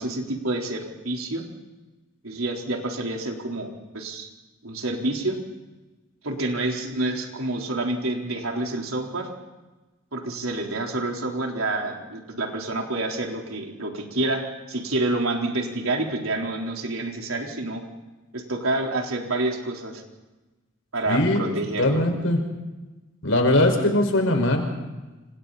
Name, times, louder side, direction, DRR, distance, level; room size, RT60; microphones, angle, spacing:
voice 1, 0.0-1.4 2.2-4.3 4.6-5.4 6.2-9.3 10.1-17.8 18.3-20.0 20.9-22.0, right 2 dB, 85° right, 1 dB, 4.1 m, -28 dB
voice 2, 21.1-21.4 21.8-22.4 23.2-24.6, left 1 dB, 75° left, 3 dB, 5.6 m, -20 dB
30.0 x 27.5 x 4.3 m, 1.1 s
head